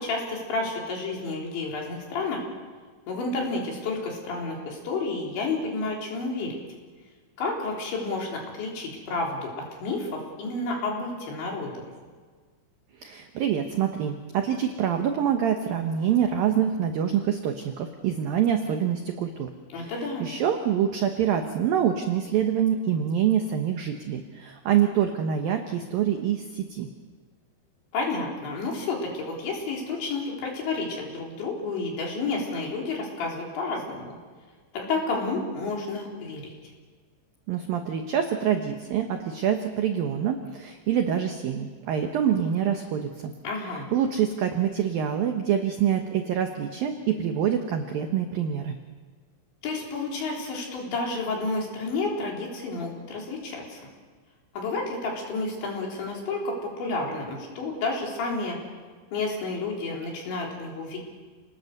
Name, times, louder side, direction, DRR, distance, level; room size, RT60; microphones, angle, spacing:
voice 1, 0.0-2.4 3.1-6.6 7.4-11.7 19.7-20.2 27.9-34.1 34.7-36.5 43.4-43.9 49.6-53.8 54.5-58.6 59.1-61.0, left 3 dB, 60° left, -1 dB, 6.0 m, -30 dB
voice 2, 13.0-19.5 19.8-19.9 20.2-26.9 37.5-43.3 43.9-48.8, right 9 dB, 85° right, 5 dB, 2.0 m, -26 dB
29.5 x 19.5 x 6.7 m, 1.5 s
omnidirectional pair, 6.0 m